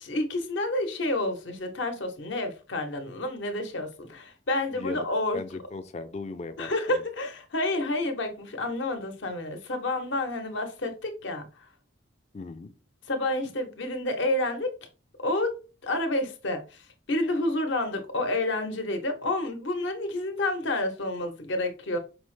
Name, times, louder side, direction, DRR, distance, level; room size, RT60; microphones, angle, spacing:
voice 1, 0.0-5.4 6.6-11.7 13.1-14.7 15.2-15.5 15.8-22.0, left 2 dB, 70° left, 6 dB, 0.8 m, -29 dB
voice 2, 4.7-5.1 5.3-6.7 12.3-12.7, left 3 dB, 35° left, 9 dB, 0.4 m, -37 dB
5.2 x 2.0 x 3.1 m, 0.33 s
head